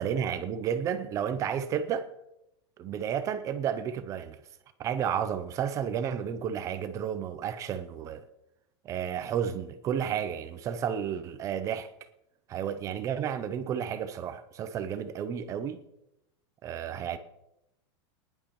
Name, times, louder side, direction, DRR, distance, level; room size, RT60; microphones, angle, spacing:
voice 1, 0.0-2.1 2.8-4.4 4.8-8.3 8.8-11.9 12.5-15.8 16.6-17.2, right 8 dB, 20° right, 0.5 m, -32 dB
20.0 x 10.5 x 3.0 m
supercardioid pair, 165°, 14 cm